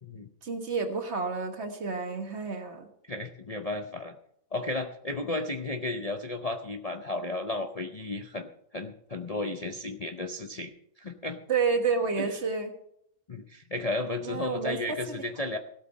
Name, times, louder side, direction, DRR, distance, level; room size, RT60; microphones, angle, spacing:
voice 1, 0.4-2.9 11.5-12.7 14.2-15.2, right 5 dB, 50° right, 6 dB, 1.7 m, -30 dB
voice 2, 3.1-4.2 4.5-8.5 8.7-10.7 11.0-11.4 12.2-12.3 13.3-15.6, left 2 dB, 35° left, 5 dB, 0.6 m, -33 dB
16.5 x 8.4 x 5.4 m, 0.72 s
omnidirectional pair, 1.5 m